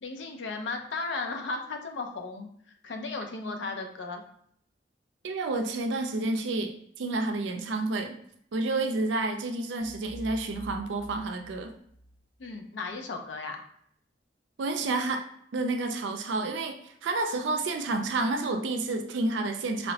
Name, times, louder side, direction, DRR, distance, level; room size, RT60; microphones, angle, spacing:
voice 1, 0.0-2.5 2.8-4.2 12.4-13.6, left 3 dB, 70° left, 5 dB, 0.4 m, -35 dB
voice 2, 5.2-8.1 8.5-11.7 14.6-15.2 15.5-16.8 17.0-19.9, right 2 dB, 75° right, 5 dB, 0.4 m, -29 dB
sound 1, 9.8-12.6, right 2 dB, 30° right, 0.8 m, -47 dB
3.1 x 2.0 x 2.7 m, 0.66 s
head